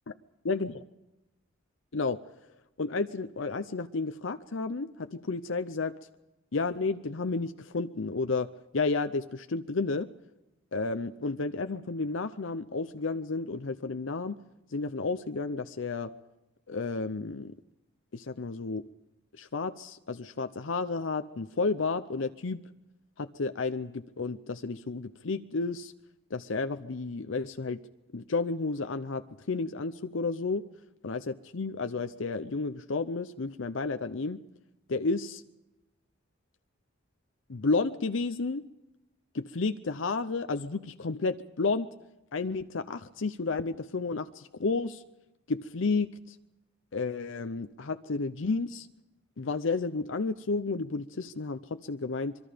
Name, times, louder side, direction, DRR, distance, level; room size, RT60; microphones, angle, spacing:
voice 1, 0.4-0.8 1.9-2.2 2.8-5.9 6.5-8.5 8.7-10.1 10.7-14.4 14.7-16.1 16.7-17.6 18.1-18.8 19.4-22.6 23.2-25.9 26.3-27.8 28.1-30.6 31.0-34.4 34.9-35.4 37.5-38.6 39.3-41.9 42.3-45.0 45.5-46.3 46.9-48.9 49.4-52.4, left 3 dB, 75° left, 9 dB, 0.7 m, -31 dB
25.5 x 23.0 x 5.1 m, 0.96 s
head